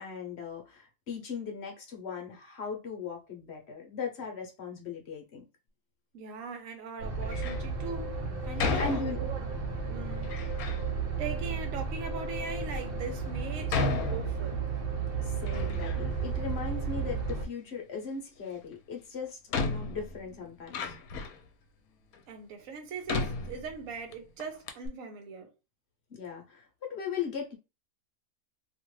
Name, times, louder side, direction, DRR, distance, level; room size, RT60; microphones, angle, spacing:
voice 1, 0.0-5.4 8.8-9.2 15.2-20.9 26.1-27.6, left 5 dB, 50° left, 1.0 m, -38 dB
voice 2, 6.1-9.4 9.8-10.3 10.6-10.9 11.2-14.6 22.3-25.5, right 5 dB, 65° right, 1.1 m, -40 dB
sound 1, 7.0-17.4, right 5 dB, 50° right, 0.7 m, -33 dB
Door, 7.2-7.7 8.6-9.6 10.2-10.9 11.6-11.7 12.4-12.5 13.7-14.8 15.2-16.2 16.5-17.4 18.7-18.8 19.5-21.5 22.1-22.2 23.1-24.1 24.4-24.5 24.7-24.9, left 4 dB, 80° left, 1.1 m, -34 dB
2.8 x 2.5 x 3.1 m
omnidirectional pair, 1.5 m